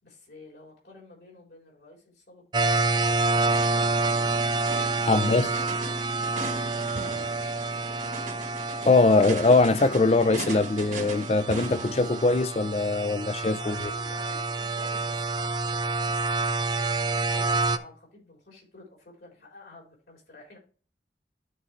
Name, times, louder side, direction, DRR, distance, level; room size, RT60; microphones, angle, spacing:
voice 1, 0.0-6.1 6.5-8.4 13.6-20.6, left 2 dB, 65° left, 3.8 m, -50 dB
sound 1, 2.5-17.8, right 3 dB, 25° right, 0.4 m, -28 dB
sound 2, 3.4-12.3, right 3 dB, 45° right, 1.2 m, -39 dB
voice 2, 5.1-5.6 8.8-13.7, left 3 dB, 35° left, 0.4 m, -22 dB
12.5 x 4.3 x 3.2 m
head